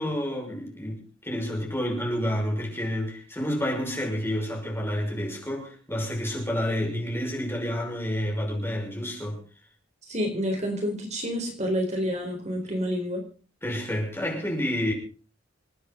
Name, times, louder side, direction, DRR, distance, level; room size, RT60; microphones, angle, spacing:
voice 1, 0.0-9.4 13.6-14.9, equal, 10° left, 5.9 m, -29 dB
voice 2, 10.1-13.2, equal, 35° right, 4.3 m, -28 dB
28.0 x 10.0 x 3.9 m
head